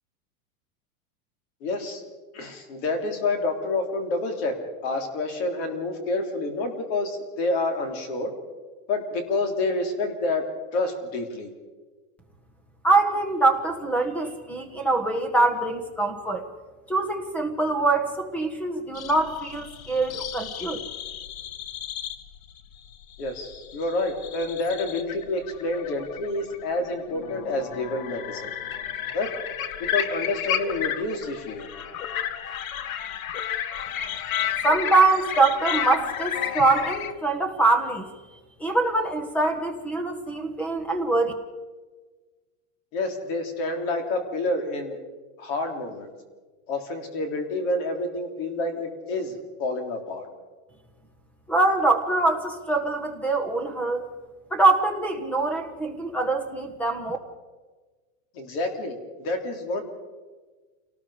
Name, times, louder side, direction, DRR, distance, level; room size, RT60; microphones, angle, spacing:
voice 1, 1.6-2.0 2.3-4.5 4.8-8.3 8.9-10.4 10.7-11.5 23.2-28.5 29.1-29.3 29.9-31.7 42.9-45.0 45.4-46.1 46.7-50.3 58.3-59.8, left 2 dB, 45° left, 5 dB, 3.7 m, -28 dB
voice 2, 12.8-16.5 16.9-20.8 34.6-38.1 38.6-41.3 51.5-54.1 54.5-57.2, right 3 dB, 5° left, 7 dB, 1.3 m, -23 dB
sound 1, 19.0-37.1, left 9 dB, 80° left, 1.7 m, -32 dB
28.0 x 19.0 x 5.0 m, 1.4 s
supercardioid pair, 175°, 42 cm